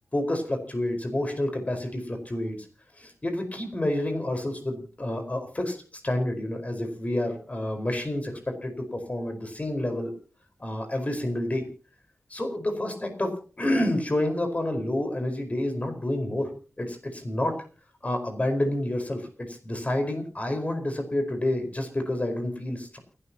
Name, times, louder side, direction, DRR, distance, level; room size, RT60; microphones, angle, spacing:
voice 1, 0.1-2.6 3.0-5.8 6.0-10.1 10.6-11.7 12.3-16.5 16.8-17.6 18.0-23.0, left 1 dB, 30° left, 5 dB, 4.8 m, -29 dB
29.0 x 12.5 x 2.9 m, 0.38 s
wide cardioid pair, 95°, 5 cm